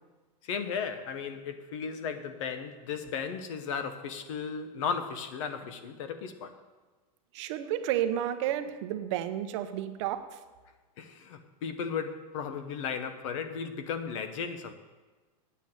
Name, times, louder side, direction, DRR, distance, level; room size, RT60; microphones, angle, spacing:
voice 1, 0.4-6.6 11.0-14.7, left 6 dB, 55° left, 1.0 m, -35 dB
voice 2, 7.3-10.4, right 11 dB, 45° right, 0.8 m, -31 dB
9.0 x 8.3 x 8.0 m
supercardioid pair, 160°, 20 cm